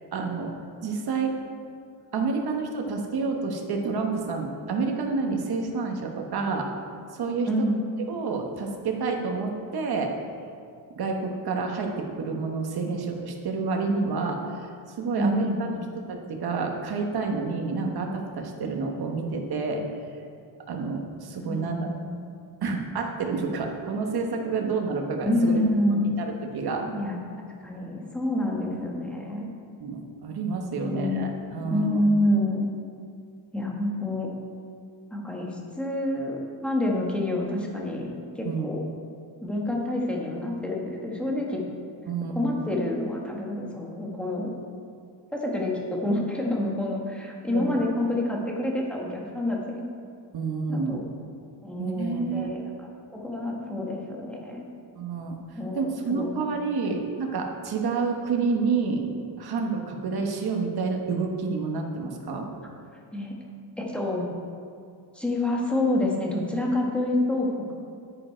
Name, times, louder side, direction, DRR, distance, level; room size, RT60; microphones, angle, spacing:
voice 1, 0.1-0.5 0.8-1.4 2.1-6.7 7.1-7.7 8.1-10.2 11.0-14.7 15.0-15.8 16.1-19.8 20.7-21.9 22.6-25.6 26.1-26.9 29.8-32.0 38.4-38.7 42.1-42.6 47.5-47.8 50.3-51.0 51.8-52.5 54.9-55.4 55.7-59.1 59.4-62.5, right 4 dB, 55° right, 2 dB, 1.3 m, -29 dB
voice 2, 7.4-7.8 15.2-15.8 21.5-22.3 25.2-26.1 26.8-27.2 27.6-29.5 30.8-31.3 31.7-32.7 33.5-34.3 35.1-38.1 38.3-38.8 39.4-41.6 42.3-44.5 45.3-49.8 50.7-51.0 51.6-52.7 53.1-54.6 55.5-56.3 56.8-56.9 63.1-63.4 63.8-64.3 65.1-67.7, left 1 dB, ahead, -2 dB, 1.3 m, -27 dB
10.0 x 9.7 x 4.5 m, 2.4 s
wide cardioid pair, 180°, 46 cm